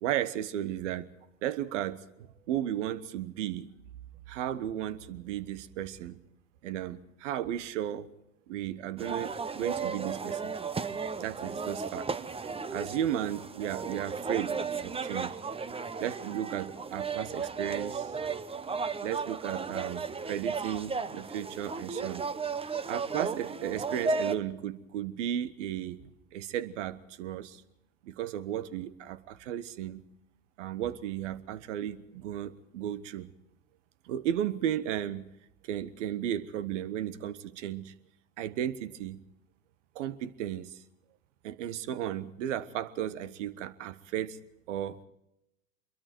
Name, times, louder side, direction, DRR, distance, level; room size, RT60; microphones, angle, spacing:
voice 1, 0.0-1.1 1.4-3.7 4.3-6.2 6.6-8.1 8.5-10.5 11.2-12.1 12.7-14.5 14.8-15.4 16.0-18.1 19.0-22.2 22.9-26.0 26.3-27.6 28.0-30.0 30.6-33.3 34.0-35.3 35.6-37.9 38.4-39.2 39.9-40.8 41.4-44.4 44.7-45.0, right 11 dB, 65° right, 17 dB, 1.3 m, -34 dB
sound 1, 9.0-24.3, right 5 dB, 15° right, 0.9 m, -34 dB
26.0 x 22.5 x 4.5 m, 0.83 s
hypercardioid pair, 80°, 39 cm